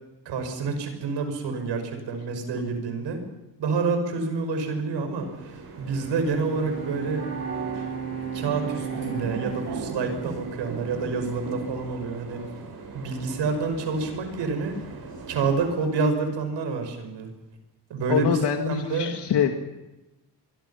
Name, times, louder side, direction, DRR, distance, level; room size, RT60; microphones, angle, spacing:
voice 1, 0.2-3.2 3.6-7.2 8.3-12.4 12.9-14.8 15.3-17.3 17.9-18.4 18.7-19.1, right 4 dB, 90° right, 6 dB, 6.1 m, -28 dB
sound 1, 5.1-15.9, right 4 dB, 60° right, 7.3 m, -39 dB
Bowed string instrument, 5.6-11.0, right 7 dB, 35° right, 6.1 m, -36 dB
voice 2, 18.1-19.5, left 8 dB, 75° left, 4 dB, 2.2 m, -24 dB
25.0 x 24.5 x 5.9 m, 0.99 s
cardioid pair, 130°, 42 cm